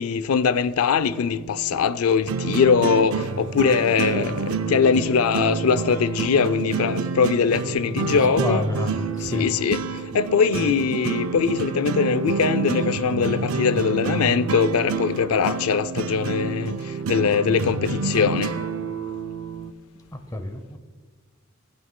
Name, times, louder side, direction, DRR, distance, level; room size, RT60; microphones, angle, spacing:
voice 1, 0.0-8.7 9.2-9.8 10.1-18.5, left 6 dB, 90° left, 0.4 m, -22 dB
sound 1, 0.9-19.7, right 5 dB, 75° right, 0.5 m, -28 dB
voice 2, 8.1-9.5 20.3-20.8, left 1 dB, 15° left, 0.7 m, -29 dB
18.5 x 9.1 x 2.2 m
head